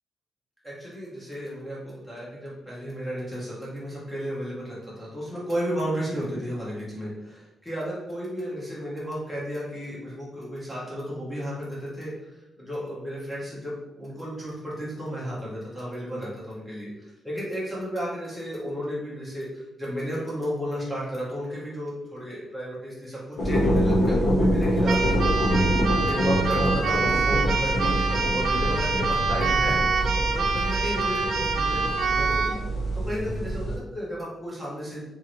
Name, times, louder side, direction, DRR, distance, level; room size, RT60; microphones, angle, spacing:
voice 1, 0.6-32.6 32.9-35.0, equal, 5° left, -7 dB, 0.8 m, -33 dB
sound 1, 23.4-33.8, equal, 85° left, 0.8 m, -25 dB
Keyboard (musical), 24.8-32.6, right 4 dB, 60° right, 0.3 m, -26 dB
2.8 x 2.5 x 2.9 m, 1.0 s
cardioid pair, 135°, 0 cm